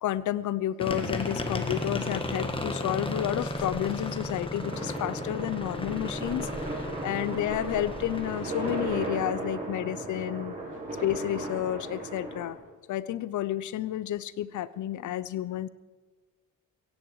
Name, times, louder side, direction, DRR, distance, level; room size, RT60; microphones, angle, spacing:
voice 1, 0.0-10.6 11.0-12.6 12.9-15.7, left 12 dB, 70° left, 18 dB, 0.7 m, -31 dB
sound 1, 0.8-9.1, left 2 dB, 15° left, 1.7 m, -34 dB
sound 2, 4.6-12.5, right 2 dB, 25° right, 6.2 m, -36 dB
16.5 x 16.0 x 4.8 m, 1.4 s
cardioid pair, 100°, 31 cm